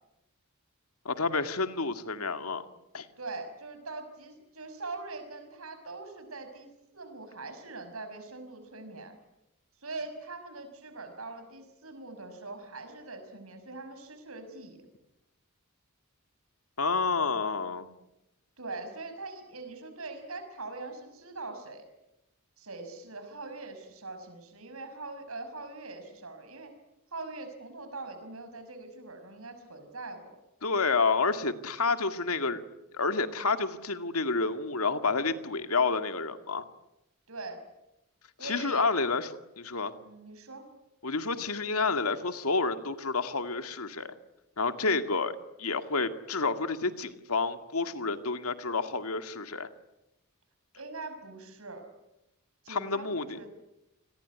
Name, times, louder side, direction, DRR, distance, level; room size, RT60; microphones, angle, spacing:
voice 1, 1.1-2.6 2.9-3.1 16.8-17.9 30.6-32.6 32.9-36.6 38.4-39.9 41.0-44.1 44.6-49.7 52.7-53.3, left 4 dB, 85° left, 9 dB, 2.1 m, -29 dB
voice 2, 3.2-6.7 6.9-9.2 9.8-14.8 18.6-21.8 22.6-26.7 27.1-30.4 37.3-37.6 38.4-38.8 40.0-40.6 50.7-51.9 52.6-53.5, right 3 dB, 75° right, 8 dB, 5.8 m, -42 dB
29.0 x 21.5 x 9.5 m, 0.92 s
head